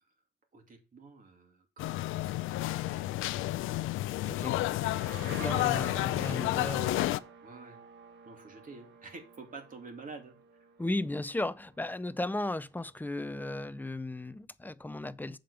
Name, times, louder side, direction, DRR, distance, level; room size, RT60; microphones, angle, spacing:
voice 1, 0.5-3.3 4.5-5.6 7.4-7.8 8.2-10.4, right 3 dB, 45° right, 2.7 m, -50 dB
sound 1, 1.8-7.2, left 15 dB, 85° left, 0.5 m, -31 dB
voice 2, 4.2-4.6 5.3-7.1 10.8-15.4, left 2 dB, 10° left, 0.5 m, -35 dB
sound 2, 4.4-12.0, right 6 dB, 65° right, 1.4 m, -50 dB
7.5 x 5.2 x 6.7 m
cardioid pair, 90°, 20 cm